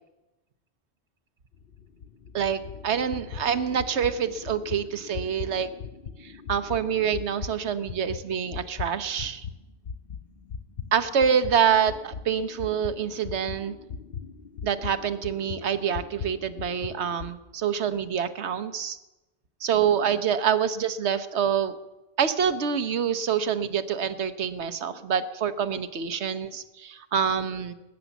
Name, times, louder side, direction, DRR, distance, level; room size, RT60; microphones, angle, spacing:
sound 1, 1.5-9.6 9.8-17.3, left 6 dB, 60° left, 0.9 m, -39 dB
voice 1, 2.3-5.7 6.2-9.5 10.9-13.7 14.6-19.0 19.6-21.8 22.2-27.7, right 7 dB, 75° right, 12 dB, 1.2 m, -26 dB
20.5 x 9.8 x 7.1 m, 1.0 s
omnidirectional pair, 1.2 m